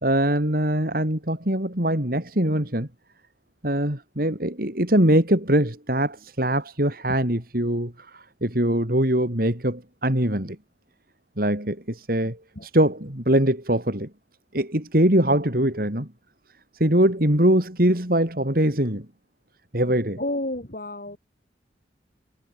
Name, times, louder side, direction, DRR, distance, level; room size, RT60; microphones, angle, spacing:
voice 1, 0.0-2.9 3.6-10.6 11.4-14.1 14.5-16.1 16.8-19.1 19.7-20.2, right 1 dB, 55° right, 4.5 m, -22 dB
voice 2, 20.2-21.2, left 1 dB, 50° left, 3.3 m, -30 dB
head